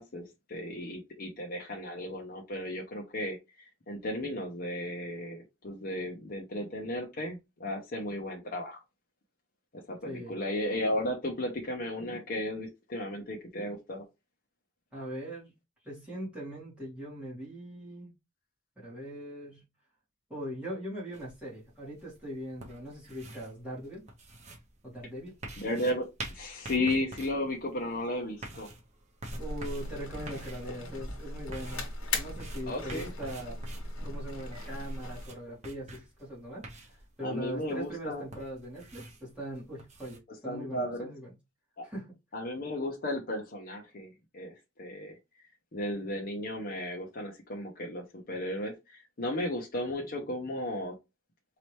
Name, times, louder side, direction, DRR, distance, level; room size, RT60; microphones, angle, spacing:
voice 1, 0.0-3.4 3.9-8.8 9.9-14.0 25.6-26.1 26.3-28.7 32.7-33.1 37.2-38.2 40.4-41.1 41.8-41.9 42.3-45.1 45.7-50.9, left 1 dB, 45° left, 0.8 m, -34 dB
voice 2, 10.0-10.4 14.9-15.5 15.8-18.1 18.8-19.6 20.3-24.0 24.8-25.3 29.4-31.9 32.2-33.6 34.0-41.3 41.8-42.1, equal, 5° right, 2.4 m, -41 dB
sound 1, 21.1-40.2, right 2 dB, 35° right, 0.9 m, -48 dB
sound 2, 29.3-35.3, left 2 dB, 85° left, 1.5 m, -38 dB
4.2 x 2.9 x 3.2 m
head